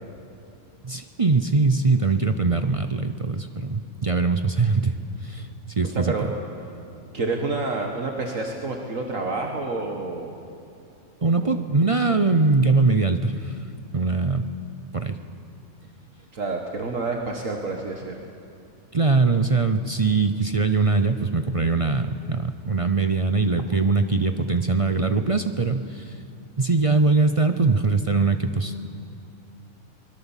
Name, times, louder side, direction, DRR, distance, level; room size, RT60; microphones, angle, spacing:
voice 1, 0.8-6.1 11.2-13.6 13.9-14.4 14.9-15.2 18.9-26.2 26.6-28.9, right 3 dB, 35° right, 8 dB, 0.6 m, -22 dB
voice 2, 7.1-10.3 11.4-11.6 16.3-18.2, right 3 dB, 60° right, 2 dB, 1.8 m, -28 dB
23.0 x 21.5 x 7.3 m, 2.6 s
omnidirectional pair, 1.5 m